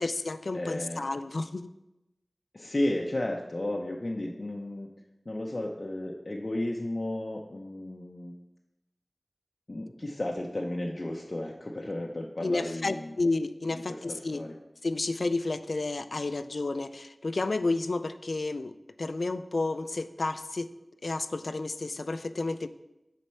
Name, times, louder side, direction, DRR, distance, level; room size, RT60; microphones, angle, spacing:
voice 1, 0.0-1.7 12.4-14.4 14.8-20.7 21.0-22.7, left 3 dB, 80° left, 12 dB, 0.3 m, -31 dB
voice 2, 0.5-1.0 2.5-4.9 5.3-8.3 9.7-13.1 13.9-14.5, left 1 dB, 50° left, 0 dB, 0.6 m, -33 dB
9.7 x 4.2 x 4.4 m, 0.95 s
wide cardioid pair, 60°, 0 cm